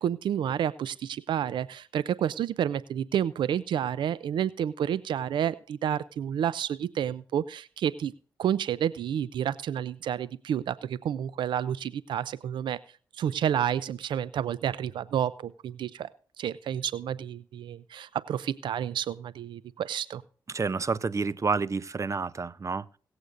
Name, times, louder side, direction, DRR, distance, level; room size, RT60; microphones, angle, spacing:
voice 1, 0.0-8.1 8.4-12.8 13.1-16.1 16.4-20.2, right 9 dB, 80° right, 0.4 m, -30 dB
voice 2, 20.5-22.9, right 4 dB, 40° right, 0.6 m, -29 dB
22.0 x 8.0 x 2.5 m
cardioid pair, 55°, 8 cm